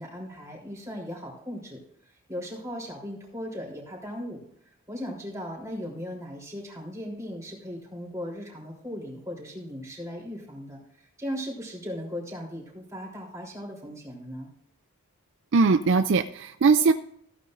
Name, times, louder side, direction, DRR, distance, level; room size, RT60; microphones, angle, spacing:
voice 1, 0.0-4.4 4.9-14.5, equal, 15° right, -3 dB, 3.5 m, -37 dB
voice 2, 15.5-16.9, right 4 dB, 55° right, 10 dB, 0.4 m, -20 dB
15.5 x 9.3 x 2.5 m, 0.71 s
head